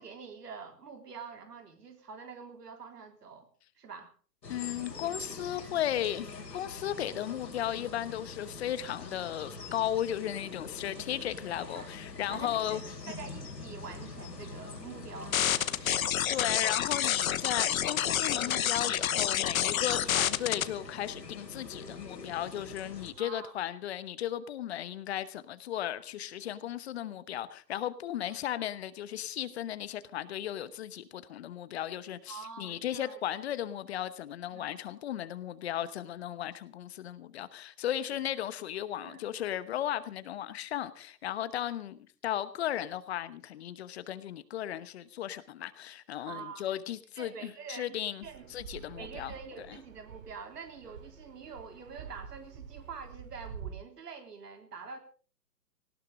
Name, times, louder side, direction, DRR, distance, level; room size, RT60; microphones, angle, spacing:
voice 1, 0.0-3.5 3.8-4.1 11.7-11.9 12.3-12.8 13.1-15.7 23.2-23.6 28.3-28.4 32.3-33.2 34.5-34.8 38.1-38.2 39.0-39.2 46.3-46.6 47.2-48.5 49.0-55.0, right 5 dB, 70° right, 3.7 m, -46 dB
sound 1, 4.4-23.1, left 3 dB, 85° left, 4.1 m, -44 dB
voice 2, 4.5-12.8 15.8-49.8, left 11 dB, 40° left, 1.1 m, -36 dB
sound 2, 15.3-20.6, left 10 dB, 55° left, 1.1 m, -28 dB
Fixed-wing aircraft airplane, 48.2-53.7, right 7 dB, 55° right, 3.1 m, -47 dB
18.5 x 17.0 x 3.8 m
hypercardioid pair, 135°, 49 cm